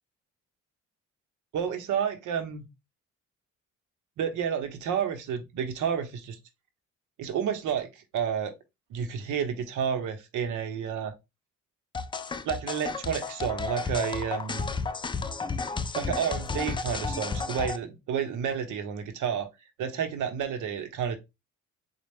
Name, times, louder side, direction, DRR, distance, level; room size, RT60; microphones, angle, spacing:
voice 1, 1.5-2.6 4.2-6.4 7.2-8.5 8.9-11.1 12.4-14.6 15.9-19.5 19.8-21.2, right 8 dB, 80° right, 0.9 m, -30 dB
sound 1, 11.9-17.8, left 4 dB, 15° left, 0.3 m, -32 dB
4.1 x 2.3 x 3.4 m
cardioid pair, 90°, 30 cm